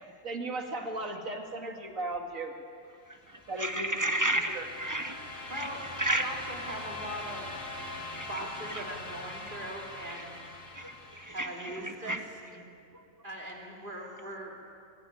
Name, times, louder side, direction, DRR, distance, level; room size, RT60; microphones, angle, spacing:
voice 1, 0.2-2.6 3.5-4.0 4.5-4.7, right 2 dB, 90° right, 3 dB, 2.6 m, -36 dB
sound 1, 3.1-12.0, left 2 dB, 80° left, 2.7 m, -43 dB
voice 2, 3.1-6.3 8.0-8.8 10.1-10.2 10.7-12.2 12.9-13.1, right 1 dB, 15° right, 7 dB, 1.0 m, -34 dB
voice 3, 5.5-5.8 6.1-7.5 8.1-10.4 11.3-12.2 12.5-12.6 13.2-14.6, right 1 dB, 40° right, 0 dB, 3.5 m, -40 dB
22.0 x 17.0 x 9.3 m, 2.4 s
omnidirectional pair, 1.3 m